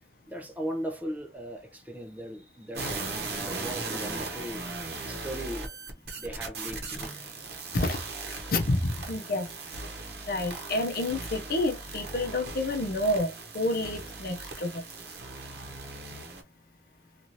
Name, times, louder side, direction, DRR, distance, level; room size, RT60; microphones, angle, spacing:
voice 1, 0.3-7.7, right 1 dB, 10° right, 0.5 m, -39 dB
sound 1, 2.7-16.4, right 3 dB, 60° right, 0.9 m, -38 dB
voice 2, 8.5-9.5 10.3-14.8, left 2 dB, 55° left, 0.6 m, -29 dB
2.7 x 2.5 x 2.9 m
head